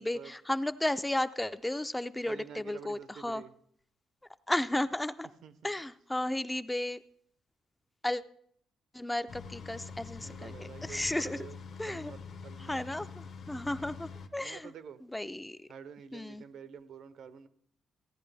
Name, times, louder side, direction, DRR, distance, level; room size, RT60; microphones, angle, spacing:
voice 1, 0.0-3.4 4.5-5.3 5.6-7.0 8.0-8.2 8.9-11.5 11.8-12.1 12.6-14.7 15.0-15.6 16.1-16.4, left 1 dB, 10° left, 12 dB, 0.4 m, -34 dB
voice 2, 2.3-3.5 5.4-5.7 10.2-11.5 11.9-12.2 12.4-12.8 14.4-15.0 15.7-17.5, right 7 dB, 75° right, 13 dB, 0.7 m, -48 dB
sound 1, 9.3-14.3, left 5 dB, 60° left, 0.8 m, -45 dB
15.5 x 10.0 x 3.4 m, 0.66 s
cardioid pair, 110°, 0 cm